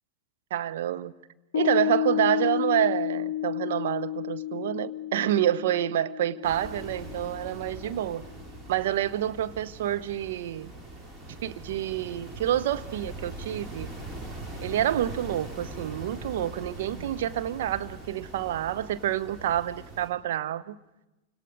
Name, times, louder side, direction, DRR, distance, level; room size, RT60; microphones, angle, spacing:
voice 1, 0.5-1.1 1.5-8.2 8.7-10.7 11.3-13.9 14.6-20.8, right 11 dB, 55° right, 0.9 m, -28 dB
Piano, 1.5-8.3, left 12 dB, 65° left, 0.7 m, -32 dB
sound 1, 6.4-20.1, right 2 dB, 20° right, 4.4 m, -42 dB
28.0 x 26.0 x 5.1 m
figure-of-eight pair, 90°, 0 cm